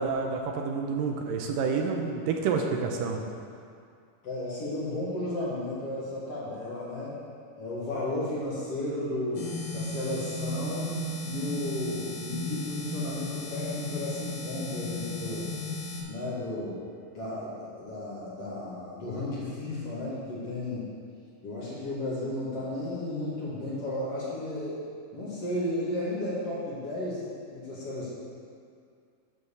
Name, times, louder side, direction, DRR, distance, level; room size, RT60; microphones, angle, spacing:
voice 1, 0.0-3.2, right 5 dB, 80° right, 2 dB, 2.3 m, -29 dB
voice 2, 4.2-7.2 7.6-10.9 11.2-15.5 16.1-16.8 17.1-20.9 21.4-24.8 25.1-27.2 27.5-28.1, left 1 dB, 50° left, -8 dB, 2.4 m, -34 dB
sound 1, 9.3-16.0, left 1 dB, 75° left, 3.5 m, -35 dB
9.8 x 4.6 x 6.9 m, 2.3 s
omnidirectional pair, 4.1 m